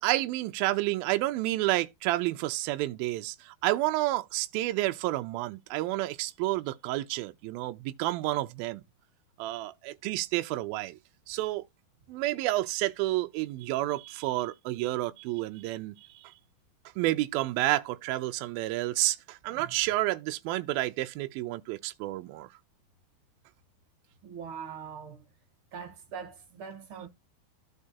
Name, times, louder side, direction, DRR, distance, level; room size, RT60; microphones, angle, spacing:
voice 1, 0.0-8.8 9.4-11.0 11.3-11.6 12.1-15.9 16.2-16.3 17.0-22.5, right 17 dB, 80° right, 2.3 m, -30 dB
voice 2, 24.2-25.2 25.7-27.1, right 7 dB, 50° right, 1.7 m, -42 dB
14.5 x 4.8 x 2.8 m
omnidirectional pair, 4.6 m